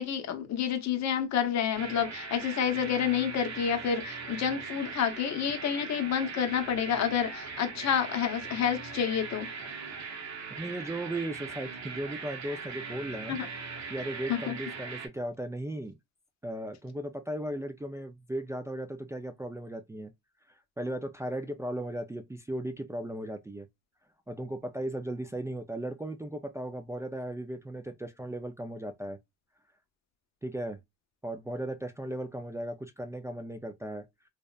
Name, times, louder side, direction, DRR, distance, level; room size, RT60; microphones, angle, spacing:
voice 1, 0.0-9.5 13.3-13.5 14.3-14.5, left 8 dB, 60° left, 0.7 m, -29 dB
sound 1, 1.7-15.1, right 5 dB, 65° right, 0.8 m, -40 dB
voice 2, 10.5-13.4 13.9-15.9 16.4-20.1 20.8-23.7 24.3-29.2 30.4-30.8 31.2-34.1, right 1 dB, 10° right, 0.3 m, -36 dB
2.7 x 2.1 x 2.3 m
cardioid pair, 90°, 30 cm